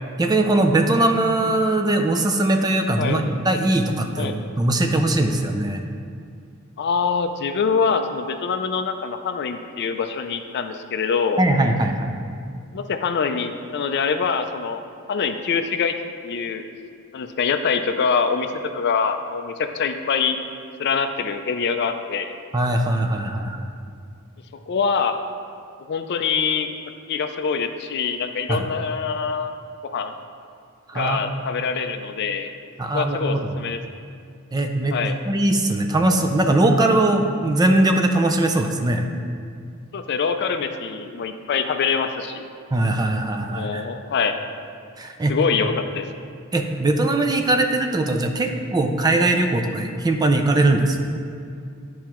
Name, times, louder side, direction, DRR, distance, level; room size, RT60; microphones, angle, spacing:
voice 1, 0.2-5.8 11.4-12.1 22.5-23.7 28.5-28.7 30.9-31.2 32.8-33.5 34.5-34.9 35.2-39.0 42.7-43.9 45.0-45.3 45.6-45.7 46.5-51.2, right 2 dB, 20° right, 4 dB, 0.4 m, -20 dB
voice 2, 6.8-11.4 12.7-14.8 15.1-16.0 16.2-16.6 17.1-18.5 18.7-20.4 20.8-22.3 24.7-25.1 25.9-26.7 27.1-29.6 29.9-30.1 30.9-32.5 32.9-33.8 34.9-35.2 39.9-42.4 43.5-44.4 45.3-46.1, left 5 dB, 50° left, 8 dB, 0.4 m, -24 dB
10.5 x 4.6 x 3.0 m, 2.3 s
head